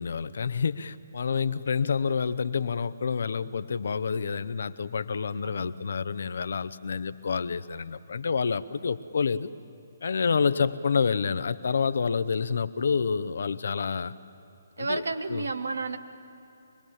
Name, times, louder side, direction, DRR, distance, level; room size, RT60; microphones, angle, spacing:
voice 1, 0.0-9.5 10.0-14.1 14.8-15.0 15.3-15.5, left 5 dB, 60° left, 14 dB, 0.7 m, -28 dB
voice 2, 5.4-5.7 14.8-16.0, right 3 dB, 70° right, 8 dB, 1.3 m, -32 dB
25.5 x 21.0 x 7.2 m, 3.0 s
figure-of-eight pair, 135°, 0 cm